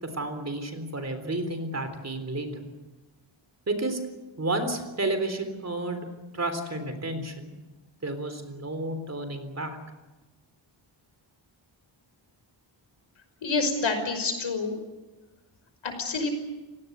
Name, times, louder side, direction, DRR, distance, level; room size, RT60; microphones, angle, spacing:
voice 1, 0.0-2.6 3.7-4.0 4.4-6.1 6.3-7.5 8.0-9.8, right 2 dB, 35° right, 8 dB, 3.7 m, -31 dB
voice 2, 13.4-14.8 15.8-16.3, left 3 dB, 75° left, 6 dB, 5.6 m, -27 dB
29.5 x 18.0 x 8.2 m, 1.1 s
wide cardioid pair, 170°, 47 cm